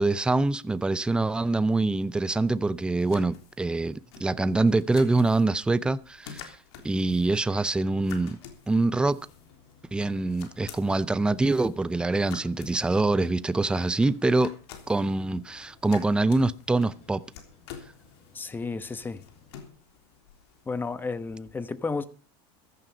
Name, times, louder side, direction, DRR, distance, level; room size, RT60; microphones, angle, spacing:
voice 1, 0.0-6.6 6.8-8.4 8.7-9.2 9.9-14.5 14.9-17.2, right 2 dB, 5° right, 0.6 m, -25 dB
sound 1, 1.9-21.5, left 8 dB, 90° left, 3.4 m, -50 dB
sound 2, 9.2-19.5, left 5 dB, 50° left, 5.8 m, -58 dB
voice 2, 18.3-19.2 20.7-22.0, left 4 dB, 15° left, 1.1 m, -32 dB
15.5 x 11.0 x 5.2 m
supercardioid pair, 135°, 13 cm